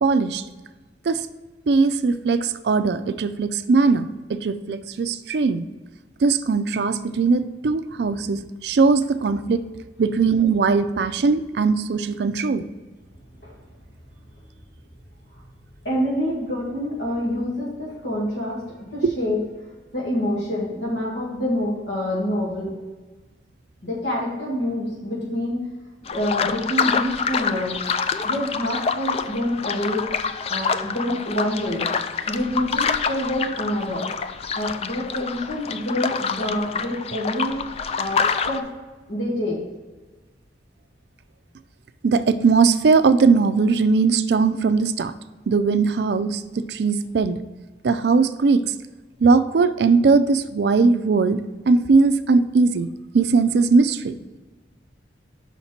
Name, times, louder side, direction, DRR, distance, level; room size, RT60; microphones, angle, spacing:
voice 1, 0.0-0.4 1.1-1.3 1.7-5.6 6.2-9.6 10.0-12.6 19.0-19.1 42.0-45.1 45.5-47.4 47.8-48.6 49.2-51.4 51.7-52.9 53.1-54.4, right 4 dB, 65° right, 11 dB, 0.4 m, -19 dB
voice 2, 15.8-18.6 18.9-19.4 19.9-22.7 23.8-25.6 26.0-27.8 28.2-30.1 30.5-31.9 32.3-34.1 34.5-37.6 38.0-38.6 39.1-39.6, left 1 dB, 70° left, -4 dB, 1.9 m, -26 dB
sound 1, 26.1-38.6, left 6 dB, 35° left, 0.3 m, -27 dB
5.8 x 4.3 x 5.7 m, 1.3 s
head